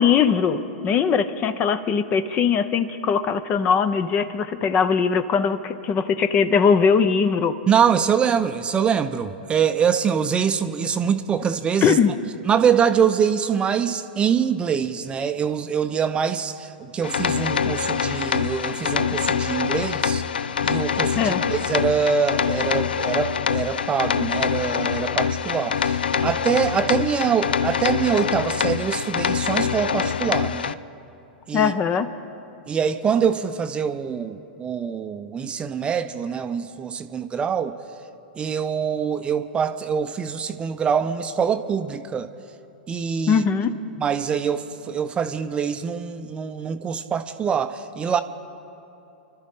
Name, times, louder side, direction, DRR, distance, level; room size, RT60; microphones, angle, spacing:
voice 1, 0.0-7.6 11.8-12.1 21.2-21.4 31.5-32.1 43.3-43.7, left 6 dB, 30° left, 13 dB, 0.8 m, -20 dB
voice 2, 7.7-12.0 12.5-20.2 20.6-30.7 31.5-31.7 32.7-37.8 38.4-42.3 42.9-43.4 44.0-48.2, right 7 dB, 20° right, 10 dB, 0.6 m, -24 dB
sound 1, 17.0-30.7, left 7 dB, 75° left, 0.5 m, -24 dB
29.0 x 12.5 x 3.7 m, 3.0 s
figure-of-eight pair, 100°, 5 cm